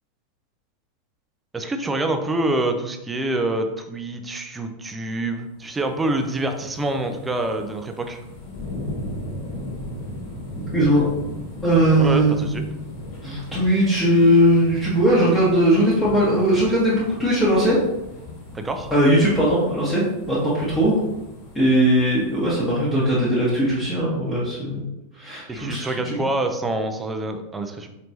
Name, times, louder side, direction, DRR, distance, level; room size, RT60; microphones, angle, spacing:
voice 1, 1.5-8.2 12.0-12.6 18.5-18.9 25.5-27.9, right 2 dB, 15° right, 6 dB, 0.4 m, -26 dB
sound 1, 5.4-23.6 24.0-24.1, left 1 dB, 40° left, 1.3 m, -37 dB
voice 2, 10.7-11.1 11.6-12.4 13.2-17.8 18.9-21.0 21.5-24.8 25.1-26.2, equal, 10° left, -8 dB, 1.1 m, -19 dB
4.4 x 3.1 x 2.7 m, 0.94 s
figure-of-eight pair, 90°, 0 cm